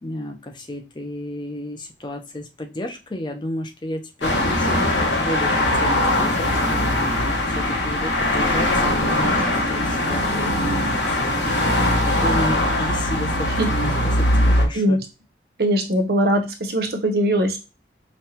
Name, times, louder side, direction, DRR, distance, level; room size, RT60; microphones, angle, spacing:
voice 1, 0.0-7.2 7.6-15.0, left 1 dB, 25° left, 4 dB, 0.5 m, -32 dB
sound 1, 4.2-14.7, left 1 dB, 80° left, 1.0 m, -21 dB
voice 2, 15.6-17.6, equal, 55° right, 2 dB, 0.8 m, -20 dB
5.1 x 2.2 x 2.8 m, 0.29 s
head